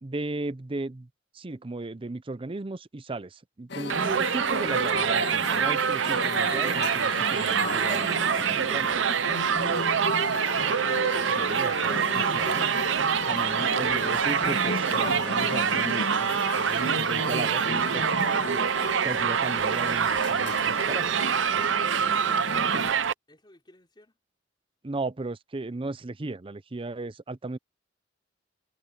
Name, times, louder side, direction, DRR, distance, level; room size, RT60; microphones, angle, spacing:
voice 1, 0.0-1.1 1.3-8.9 11.3-12.6 13.3-18.3 19.0-21.0 24.8-27.6, right 2 dB, 30° right, 0.6 m, -36 dB
sound 1, 3.7-22.9, left 3 dB, 65° left, 1.9 m, -35 dB
Crowd, 3.9-23.1, right 7 dB, 70° right, 0.6 m, -25 dB
voice 2, 20.9-23.0 23.3-24.2, left 1 dB, 25° left, 3.7 m, -54 dB
head